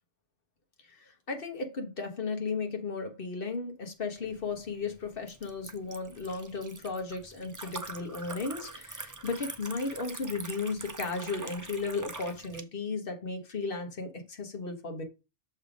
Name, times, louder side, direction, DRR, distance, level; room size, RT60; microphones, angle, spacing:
voice 1, 0.8-15.0, left 4 dB, 45° left, 1.4 m, -35 dB
Liquid, 4.2-12.6, right 3 dB, 30° right, 0.3 m, -44 dB
6.7 x 3.5 x 5.0 m
omnidirectional pair, 1.3 m